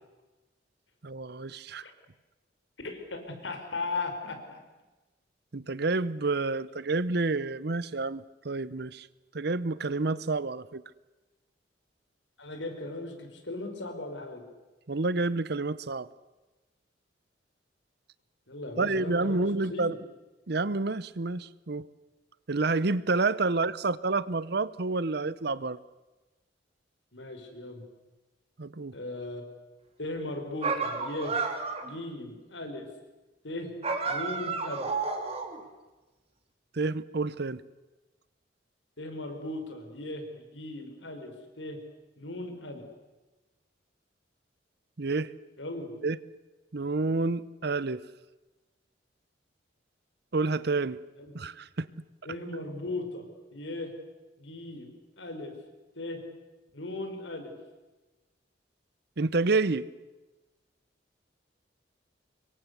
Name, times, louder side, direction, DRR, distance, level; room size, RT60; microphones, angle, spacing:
voice 1, 1.0-1.8 5.5-9.1 9.3-10.8 14.9-16.1 18.8-19.9 20.5-21.9 22.5-25.8 28.6-28.9 36.7-37.6 45.0-45.3 46.0-46.2 46.7-48.0 50.3-51.0 51.3-51.9 59.2-59.9, right 3 dB, 60° right, 18 dB, 0.8 m, -29 dB
voice 2, 2.8-4.6 12.4-14.4 18.5-19.4 19.7-20.0 27.1-27.8 28.9-29.4 30.0-31.3 31.8-32.8 33.4-33.7 34.0-34.9 39.0-41.3 41.6-41.8 42.2-42.8 45.6-45.9 51.2-51.3 52.2-53.2 53.5-53.9 54.4-55.5 55.9-56.2 56.7-57.5, left 2 dB, 85° left, 5 dB, 5.0 m, -37 dB
sound 1, 30.6-31.9 33.8-35.6, right 4 dB, 35° right, 3.0 m, -31 dB
26.0 x 23.0 x 8.2 m, 1.1 s
head